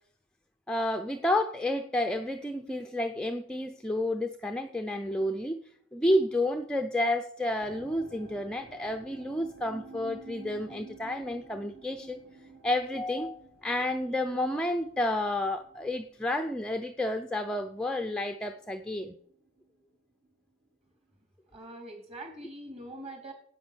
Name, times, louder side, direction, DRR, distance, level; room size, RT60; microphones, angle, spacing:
voice 1, 0.7-5.6 5.9-12.2 12.6-19.2, left 1 dB, 5° left, 5 dB, 0.5 m, -30 dB
sound 1, 7.6-18.8 19.0-19.7 20.2-20.3, right 3 dB, 65° right, 2.8 m, -52 dB
voice 2, 21.5-23.3, right 1 dB, 30° right, 2 dB, 4.0 m, -43 dB
12.5 x 8.9 x 7.0 m, 0.65 s
head